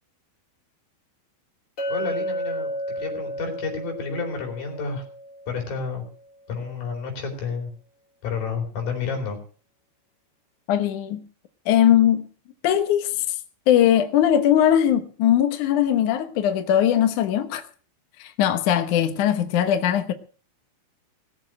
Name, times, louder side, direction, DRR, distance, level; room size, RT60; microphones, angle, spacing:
Chink clink, 1.8-6.0, equal, 35° left, 4.5 m, -32 dB
voice 1, 1.9-2.7 2.9-5.0 5.5-6.0 6.5-7.7 8.2-9.4, left 5 dB, 55° left, 5.7 m, -30 dB
voice 2, 10.7-11.2 11.7-12.3 12.6-13.4 13.7-17.6 18.2-20.1, left 10 dB, 70° left, 1.9 m, -20 dB
19.0 x 7.5 x 7.6 m
omnidirectional pair, 5.1 m